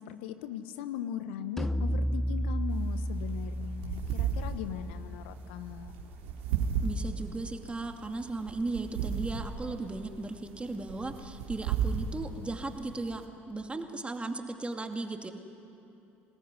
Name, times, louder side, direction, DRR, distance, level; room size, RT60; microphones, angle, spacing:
voice 1, 0.1-6.0, left 9 dB, 70° left, 11 dB, 1.1 m, -39 dB
sound 1, 1.6-7.0, equal, 5° left, 0.8 m, -34 dB
sound 2, 2.7-13.2, right 7 dB, 70° right, 3.3 m, -35 dB
voice 2, 6.8-15.3, right 2 dB, 15° right, 5 dB, 2.4 m, -36 dB
25.0 x 19.0 x 9.8 m, 2.9 s
hypercardioid pair, 65°, 6 cm